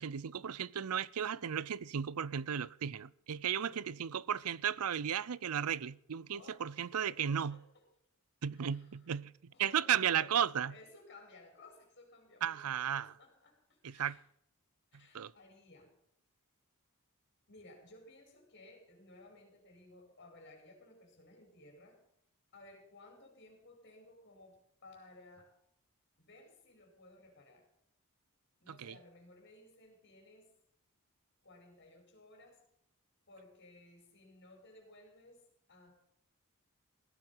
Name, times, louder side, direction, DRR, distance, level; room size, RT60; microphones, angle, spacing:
voice 1, 0.0-7.6 8.4-10.7 12.4-13.1 13.8-14.2 15.1-15.3 28.7-29.0, right 8 dB, 80° right, 0.5 m, -35 dB
voice 2, 3.5-3.9 6.3-7.8 8.5-8.9 9.5-10.3 10.7-14.2 14.9-15.9 17.5-22.0 22.5-25.5 26.2-27.7 28.6-30.5 31.4-32.6 33.3-35.4 35.7-35.9, left 2 dB, 50° left, 5.1 m, -58 dB
16.5 x 11.0 x 5.6 m
head